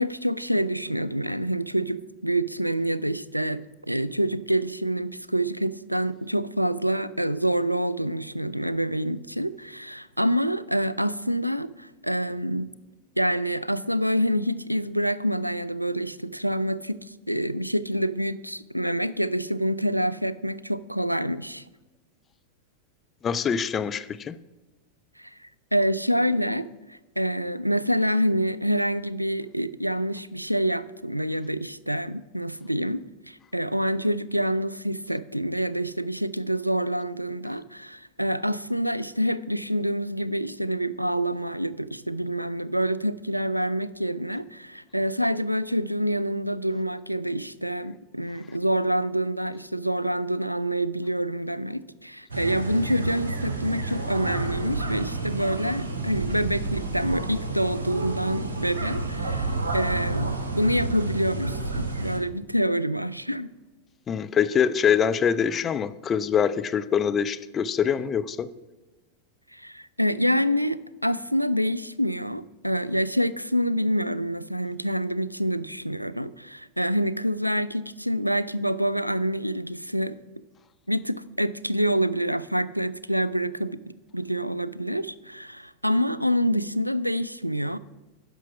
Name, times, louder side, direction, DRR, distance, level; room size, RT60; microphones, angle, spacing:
voice 1, 0.0-3.6 3.9-12.7 13.2-21.6 25.2-63.5 69.5-80.2 80.9-83.8 84.1-87.8, equal, 90° right, 17 dB, 0.3 m, -27 dB
voice 2, 23.2-24.4 64.1-68.5, left 7 dB, 25° left, 12 dB, 0.4 m, -24 dB
sound 1, 52.3-62.2, right 3 dB, 70° right, 1.2 m, -30 dB
10.0 x 6.0 x 5.9 m, 1.1 s
figure-of-eight pair, 90°, 0 cm